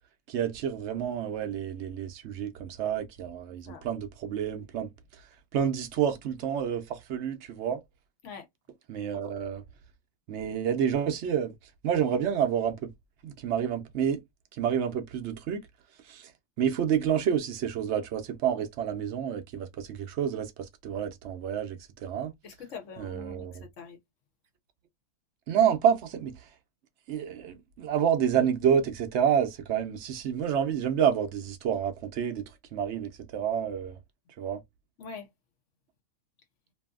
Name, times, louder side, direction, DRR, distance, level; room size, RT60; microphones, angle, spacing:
voice 1, 0.3-7.8 8.9-9.6 10.3-11.5 11.8-12.9 13.2-14.2 14.5-15.7 16.0-16.3 16.6-22.3 23.0-23.6 25.5-26.5 27.1-32.4 32.7-34.0 34.4-34.6, right 8 dB, 65° right, 0.7 m, -29 dB
voice 2, 22.4-24.0 35.0-35.3, left 5 dB, 60° left, 1.0 m, -43 dB
2.6 x 2.6 x 2.3 m
omnidirectional pair, 1.6 m